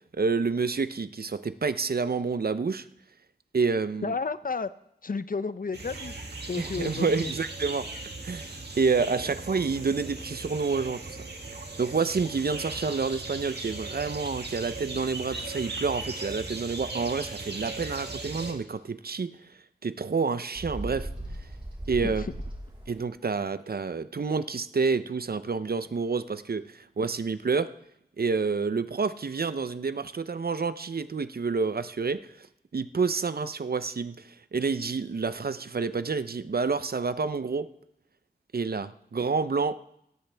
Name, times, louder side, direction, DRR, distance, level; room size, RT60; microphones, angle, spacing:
voice 1, 0.2-2.8 3.5-4.1 6.6-7.9 8.2-11.2 11.8-19.3 19.8-21.1 21.9-22.2 22.9-27.7 28.2-32.5 32.7-37.7 38.5-39.8, right 4 dB, 65° right, 13 dB, 0.6 m, -28 dB
voice 2, 4.0-4.7 5.0-7.3 22.0-22.3, left 4 dB, 60° left, 14 dB, 0.6 m, -32 dB
sound 1, 5.7-18.5, right 2 dB, 85° right, 1.8 m, -38 dB
Bird, 20.6-23.0, right 1 dB, 35° right, 3.9 m, -37 dB
17.0 x 14.0 x 3.4 m, 0.78 s
wide cardioid pair, 50°, 17 cm